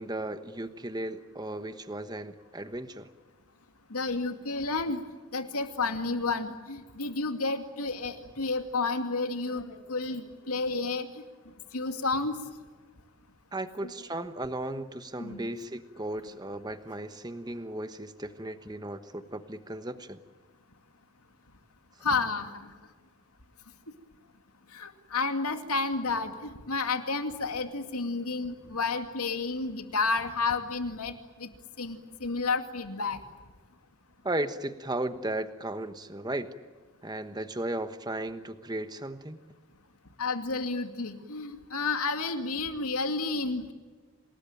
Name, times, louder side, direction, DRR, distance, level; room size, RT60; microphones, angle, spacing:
voice 1, 0.0-3.1 13.5-20.2 34.2-36.5 37.0-39.4, right 1 dB, 20° right, 10 dB, 1.2 m, -35 dB
voice 2, 3.9-5.0 5.3-11.1 11.7-12.3 13.8-13.9 15.2-15.5 22.0-22.7 24.7-31.5 31.8-33.2 40.2-43.7, left 3 dB, 85° left, 7 dB, 2.4 m, -31 dB
27.5 x 20.0 x 9.1 m, 1.4 s
head